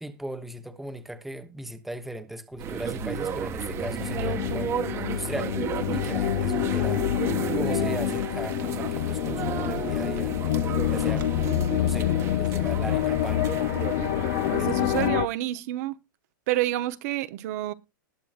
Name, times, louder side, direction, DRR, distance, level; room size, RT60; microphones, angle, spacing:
voice 1, 0.0-7.2 7.5-10.4 10.9-11.3 11.7-13.5 14.1-14.7 15.0-15.1, right 1 dB, ahead, 1.0 m, -38 dB
sound 1, 2.6-15.1, right 9 dB, 25° right, 1.2 m, -33 dB
sound 2, 2.8-15.3, left 13 dB, 50° left, 0.6 m, -27 dB
sound 3, 6.0-12.5, right 10 dB, 75° right, 2.3 m, -51 dB
voice 2, 14.5-16.0 16.5-17.7, right 15 dB, 50° right, 0.9 m, -28 dB
20.0 x 8.3 x 2.5 m
hypercardioid pair, 140°, 11 cm